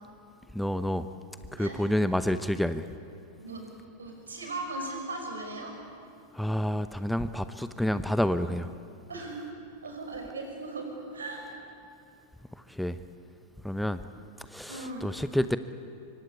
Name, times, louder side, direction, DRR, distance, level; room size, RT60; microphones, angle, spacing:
voice 1, 0.5-1.1 1.5-2.9 6.3-8.7 12.5-13.0 13.6-14.0 14.4-15.6, equal, ahead, 12 dB, 0.8 m, -29 dB
voice 2, 4.0-5.7 9.1-9.5 9.8-11.4 14.7-15.1, right 2 dB, 70° right, 2 dB, 6.3 m, -38 dB
25.5 x 24.5 x 8.4 m, 2.5 s
figure-of-eight pair, 90°, 0 cm